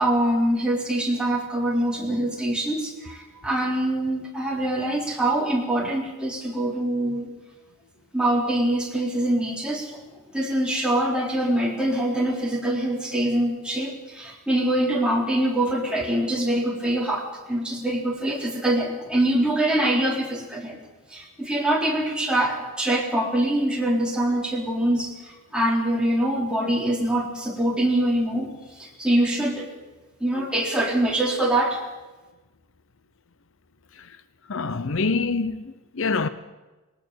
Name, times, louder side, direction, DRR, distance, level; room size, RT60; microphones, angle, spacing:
voice 1, 0.0-7.3 8.1-10.0 10.3-20.8 21.1-28.5 28.8-29.7 30.2-31.8, right 1 dB, 5° right, 3.7 m, -24 dB
voice 2, 34.5-36.3, left 4 dB, 60° left, 0.8 m, -26 dB
20.0 x 19.5 x 6.7 m
head